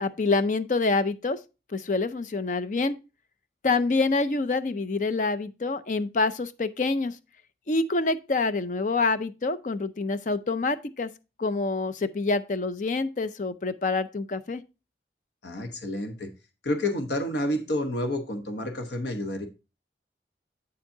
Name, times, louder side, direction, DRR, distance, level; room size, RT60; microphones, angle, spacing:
voice 1, 0.0-1.4 1.7-3.0 3.6-7.2 7.7-11.1 11.4-14.6, left 3 dB, 45° left, 0.5 m, -26 dB
voice 2, 15.4-16.3 16.6-19.5, left 1 dB, 75° left, 1.0 m, -29 dB
8.4 x 7.1 x 2.7 m
head